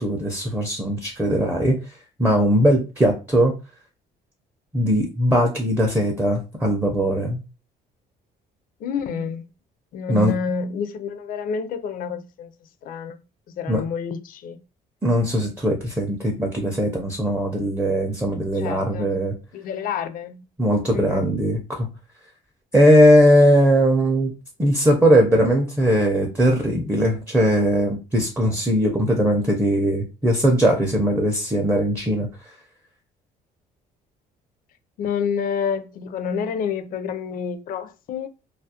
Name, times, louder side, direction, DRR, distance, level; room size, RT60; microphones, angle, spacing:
voice 1, 0.0-1.8 2.2-3.5 4.7-7.4 10.1-10.3 13.7-13.8 15.0-19.4 20.6-21.9 22.7-24.3 24.6-32.3, equal, 10° right, 0.5 m, -19 dB
voice 2, 8.8-9.5 9.9-12.5 12.8-13.2 13.5-14.6 18.5-19.2 19.5-20.4 20.9-21.4 35.0-38.3, left 6 dB, 55° left, 0.4 m, -28 dB
2.3 x 2.0 x 2.7 m
cardioid pair, 110°, 17 cm